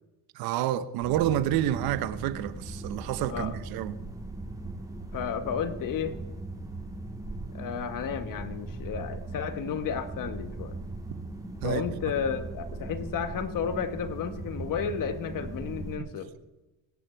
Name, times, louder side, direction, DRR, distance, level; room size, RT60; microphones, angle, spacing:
voice 1, 0.3-4.0 11.6-11.8 16.0-16.1, right 12 dB, 75° right, 0.9 m, -29 dB
sound 1, 1.0-16.0, right 2 dB, 10° right, 3.4 m, -39 dB
voice 2, 5.1-6.2 7.5-10.8 11.6-16.3, left 7 dB, 60° left, 1.7 m, -32 dB
23.0 x 10.0 x 4.6 m
supercardioid pair, 75°, 37 cm